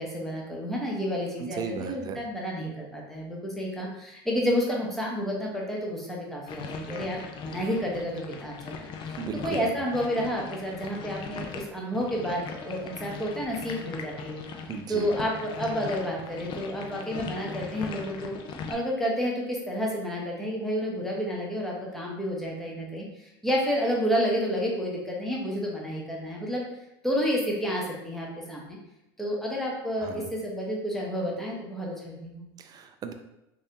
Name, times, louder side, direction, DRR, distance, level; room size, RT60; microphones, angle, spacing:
voice 1, 0.0-8.7 9.0-14.4 14.9-18.3 18.7-26.6 27.0-28.8 29.2-32.4, equal, ahead, -3 dB, 0.9 m, -30 dB
voice 2, 1.4-2.2 9.2-9.7 14.7-15.1 30.0-30.3 32.6-33.1, right 6 dB, 30° right, 7 dB, 0.4 m, -36 dB
sound 1, 6.5-18.7, left 5 dB, 40° left, 0.5 m, -39 dB
3.1 x 2.6 x 2.8 m, 0.90 s
hypercardioid pair, 100°, 12 cm